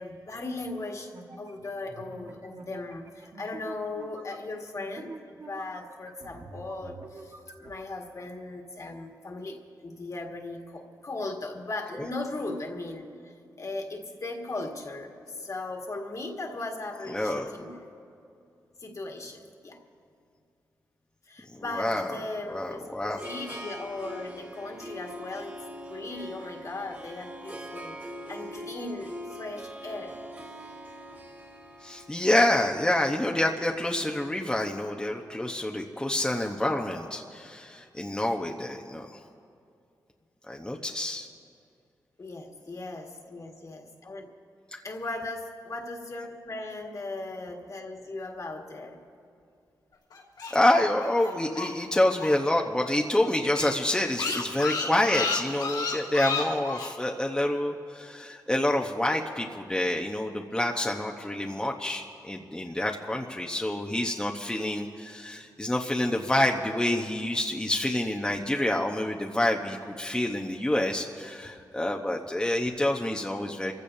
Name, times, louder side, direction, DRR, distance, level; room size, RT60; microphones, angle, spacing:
voice 1, 0.0-5.2 5.5-17.9 18.8-19.8 21.3-25.6 25.9-28.0 28.3-30.2 42.2-44.3 44.8-49.0 67.1-67.3, left 2 dB, 50° left, 2 dB, 1.9 m, -38 dB
sound 1, 1.1-7.7, right 3 dB, 55° right, 1.5 m, -47 dB
voice 2, 17.1-17.5 21.5-22.2 22.5-23.2 31.8-39.2 40.5-41.3 44.7-44.8 50.5-73.7, left 1 dB, 10° left, 1 dB, 0.9 m, -27 dB
Harp, 22.5-34.7, equal, 30° right, 2.5 m, -43 dB
sound 2, 50.1-52.6 52.8-52.9 53.2-53.3 53.5-56.9, left 4 dB, 85° left, 3.1 m, -31 dB
28.0 x 15.5 x 2.8 m, 2.5 s
cardioid pair, 70°, 7 cm